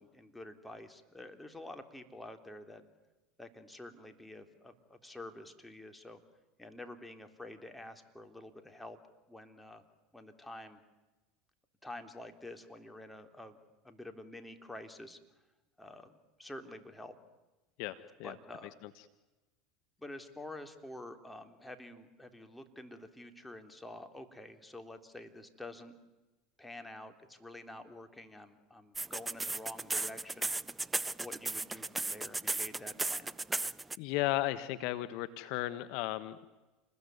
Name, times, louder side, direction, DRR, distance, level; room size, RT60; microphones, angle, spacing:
voice 1, 0.0-2.9 3.4-6.2 6.6-9.0 9.3-9.8 10.1-10.8 11.8-13.6 13.8-15.2 15.8-16.1 16.4-17.2 18.2-18.7 20.0-26.0 26.6-30.5 31.2-33.3, left 1 dB, 5° left, 6 dB, 3.7 m, -48 dB
voice 2, 17.8-18.3 34.0-36.5, left 16 dB, 60° left, 13 dB, 1.3 m, -35 dB
sound 1, 29.0-34.0, right 2 dB, 15° right, 0.8 m, -34 dB
29.5 x 21.0 x 9.6 m, 1.1 s
hypercardioid pair, 80°, 0 cm